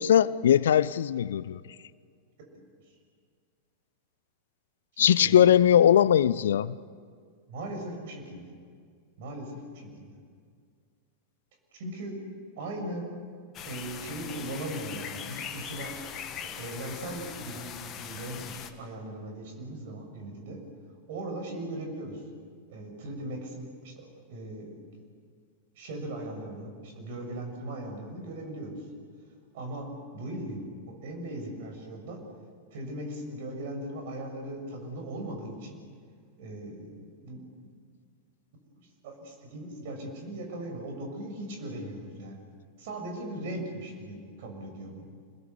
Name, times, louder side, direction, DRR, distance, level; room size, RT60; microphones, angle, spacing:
voice 1, 0.0-1.6 5.0-6.7, left 10 dB, 60° left, 0.5 m, -20 dB
voice 2, 4.9-5.4 7.5-8.4 9.2-10.2 11.7-12.2 12.6-13.1 13.6-15.9 16.4-20.6 21.1-22.2 22.7-24.8 25.7-28.7 29.5-29.9 30.1-32.2 32.7-35.8 36.4-37.7 39.0-42.4 42.8-45.0, right 1 dB, 55° right, 6.7 m, -39 dB
sound 1, 13.5-18.7, left 8 dB, 30° left, 1.8 m, -40 dB
27.5 x 21.0 x 8.2 m
figure-of-eight pair, 90°, 0 cm